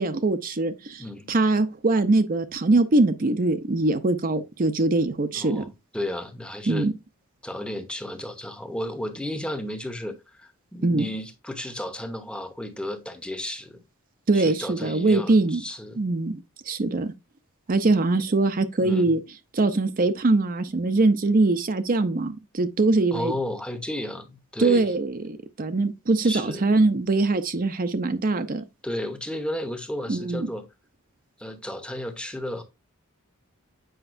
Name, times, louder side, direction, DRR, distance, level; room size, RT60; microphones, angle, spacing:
voice 1, 0.0-5.6 6.7-6.9 10.8-11.1 14.3-15.6 16.0-17.1 17.7-19.2 19.5-23.3 24.6-28.6 30.1-30.5, right 2 dB, 40° right, 0.6 m, -22 dB
voice 2, 1.0-1.3 5.3-6.9 7.4-13.8 14.3-16.0 18.8-19.1 23.1-24.9 26.2-26.6 28.8-30.7 31.4-32.6, left 1 dB, 5° left, 0.9 m, -33 dB
7.9 x 5.3 x 2.6 m
head